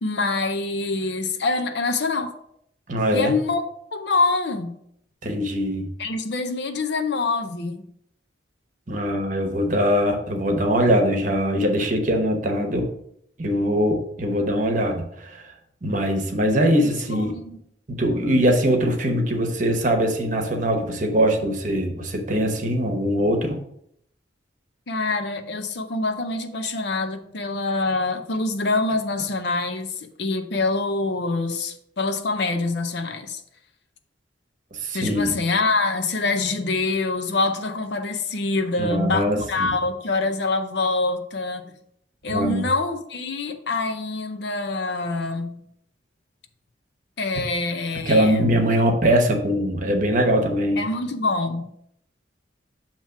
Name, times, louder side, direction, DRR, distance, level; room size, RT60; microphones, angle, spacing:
voice 1, 0.0-2.3 3.1-3.6 3.9-4.8 6.0-7.9 16.8-17.6 24.9-33.4 34.9-41.7 42.2-45.6 47.2-48.6 50.8-51.7, left 3 dB, 65° left, 0.7 m, -25 dB
voice 2, 2.9-3.3 5.2-5.9 8.9-12.9 13.4-15.5 15.8-17.4 17.9-23.6 34.7-35.3 38.8-39.8 42.3-42.6 48.1-50.8, equal, 45° right, 1.0 m, -22 dB
7.3 x 3.0 x 5.8 m
head